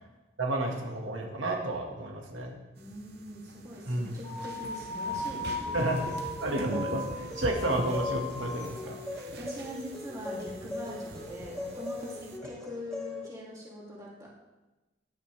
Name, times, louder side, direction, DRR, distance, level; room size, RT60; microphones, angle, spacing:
voice 1, 0.4-2.6 3.9-4.1 5.7-6.0 6.4-9.0, right 1 dB, 80° right, 0 dB, 1.9 m, -31 dB
voice 2, 2.8-5.9 9.4-14.3, equal, 15° right, -5 dB, 2.8 m, -43 dB
sound 1, 2.8-12.4, right 1 dB, 55° right, 1.0 m, -43 dB
sound 2, 4.2-8.9, left 2 dB, 25° left, 1.8 m, -37 dB
sound 3, 5.7-13.3, left 3 dB, 5° left, 1.8 m, -40 dB
18.0 x 11.0 x 3.4 m, 1.1 s
head